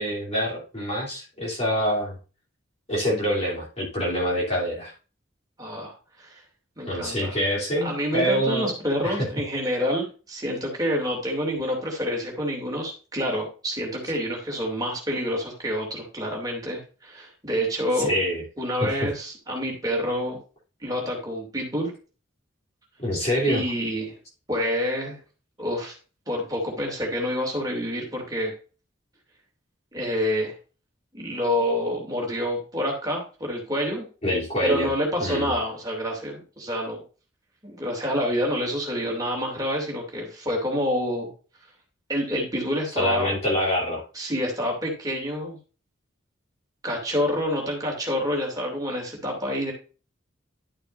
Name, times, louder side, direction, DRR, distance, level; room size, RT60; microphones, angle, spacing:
voice 1, 0.0-2.2 2.9-4.9 6.9-8.7 9.0-9.3 18.0-18.4 18.8-19.1 23.0-23.6 34.2-34.9 35.2-35.5 42.9-44.0, equal, 35° left, -5 dB, 3.2 m, -25 dB
voice 2, 5.6-5.9 6.2-6.4 6.8-7.4 7.8-18.1 18.6-20.4 20.8-21.9 23.5-24.2 24.5-25.2 25.6-25.9 26.3-28.5 29.9-30.5 31.1-34.0 34.6-37.0 37.6-41.3 42.1-43.3 44.1-45.6 46.8-49.7, equal, 20° right, 0 dB, 2.7 m, -27 dB
11.5 x 6.8 x 2.6 m, 0.35 s
head